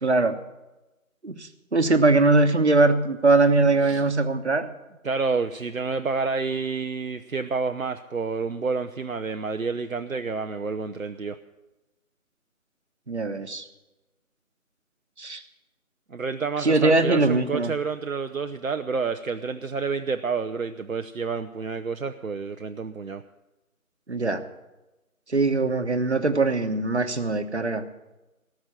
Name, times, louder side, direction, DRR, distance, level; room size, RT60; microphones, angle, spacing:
voice 1, 0.0-0.4 1.2-4.7 13.1-13.6 15.2-15.4 16.6-17.7 24.1-24.4 25.3-27.8, right 3 dB, 50° right, 9 dB, 1.2 m, -21 dB
voice 2, 5.0-11.4 16.1-23.2, right 4 dB, 70° right, 8 dB, 0.8 m, -29 dB
18.0 x 6.3 x 9.6 m, 1.0 s
figure-of-eight pair, 170°, 43 cm